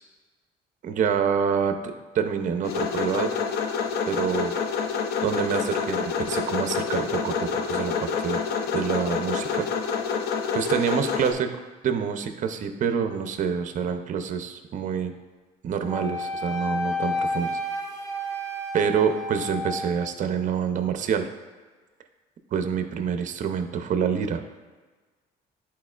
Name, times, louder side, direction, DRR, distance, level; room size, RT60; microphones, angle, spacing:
voice 1, 0.8-3.3 4.1-4.5 5.2-8.5 8.7-9.7 10.5-11.5 11.8-15.1 15.6-17.6 18.7-21.3 22.5-24.4, right 7 dB, 50° right, 7 dB, 0.6 m, -27 dB
sound 1, 2.6-11.3, left 6 dB, 70° left, 0.6 m, -28 dB
Wind instrument woodwind instrument, 15.9-20.2, left 1 dB, 20° left, 1.0 m, -31 dB
10.5 x 4.4 x 2.4 m, 1.4 s
cardioid pair, 110°, 17 cm